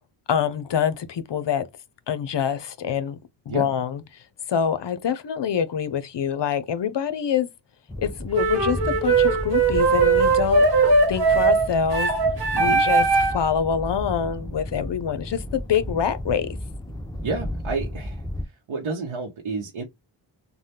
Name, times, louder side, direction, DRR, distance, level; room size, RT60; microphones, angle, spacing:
voice 1, 0.3-1.7 2.1-3.2 3.5-4.2 4.5-7.5 8.0-10.7 11.1-12.1 12.5-16.5, left 7 dB, 60° left, 0.6 m, -25 dB
sound 1, 7.9-18.4, left 1 dB, 10° left, 0.6 m, -34 dB
sound 2, 8.3-13.5, right 4 dB, 50° right, 1.1 m, -20 dB
voice 2, 17.2-18.2 18.7-19.8, right 4 dB, 75° right, 0.8 m, -30 dB
3.3 x 2.2 x 2.8 m
cardioid pair, 45°, 49 cm